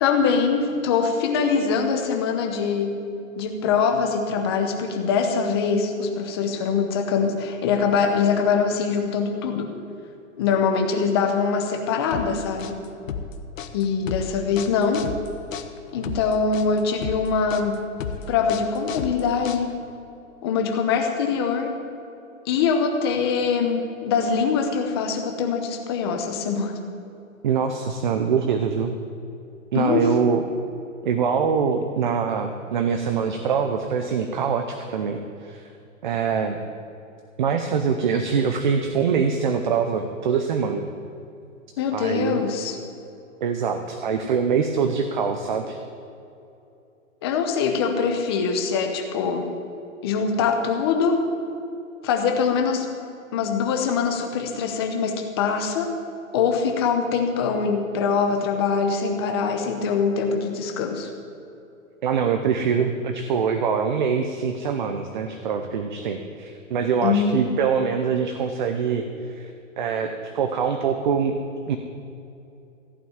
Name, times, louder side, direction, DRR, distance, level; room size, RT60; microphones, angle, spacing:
voice 1, 0.0-3.0 3.4-9.7 10.4-12.8 13.7-15.1 15.9-17.8 18.3-19.7 20.4-21.8 22.5-26.8 29.7-30.0 41.8-42.8 47.2-49.5 50.0-51.2 52.0-52.9 53.3-55.9 56.3-61.1 67.0-67.4, left 5 dB, 20° left, 4 dB, 0.8 m, -23 dB
sound 1, 12.1-20.0, left 6 dB, 75° left, 1.1 m, -33 dB
voice 2, 27.4-28.9 29.7-30.4 31.0-35.6 36.0-36.6 37.4-40.8 41.9-42.4 43.4-45.8 62.0-69.5 69.8-70.1 70.3-71.3 71.7-71.8, right 6 dB, 35° right, 7 dB, 0.7 m, -24 dB
15.0 x 5.9 x 8.9 m, 2.7 s
hypercardioid pair, 170°, 39 cm